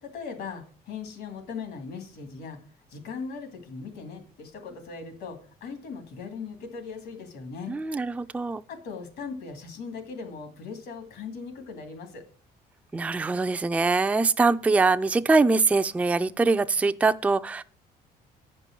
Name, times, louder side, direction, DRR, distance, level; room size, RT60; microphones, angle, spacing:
voice 1, 0.0-2.6 2.9-7.8 8.7-12.2, left 5 dB, 75° left, 2.5 m, -39 dB
voice 2, 7.7-8.6 12.9-17.6, right 3 dB, 10° right, 0.3 m, -23 dB
8.9 x 5.4 x 7.4 m
cardioid pair, 110°, 17 cm